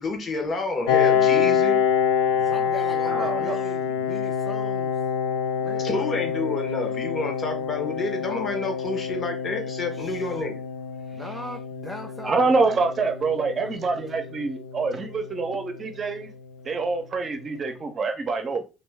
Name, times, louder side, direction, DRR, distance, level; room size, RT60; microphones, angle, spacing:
voice 1, 0.0-1.8 5.8-10.6, left 3 dB, 40° left, 1.1 m, -29 dB
Piano, 0.9-16.2, left 7 dB, 75° left, 0.4 m, -26 dB
voice 2, 2.3-5.0 5.6-6.1 9.9-10.4 11.1-12.8 13.6-13.8, left 1 dB, 10° left, 0.4 m, -40 dB
voice 3, 3.1-3.6 11.2-11.3 12.2-16.3 16.6-18.6, right 4 dB, 40° right, 0.8 m, -26 dB
3.0 x 2.6 x 3.4 m
hypercardioid pair, 55°, 0 cm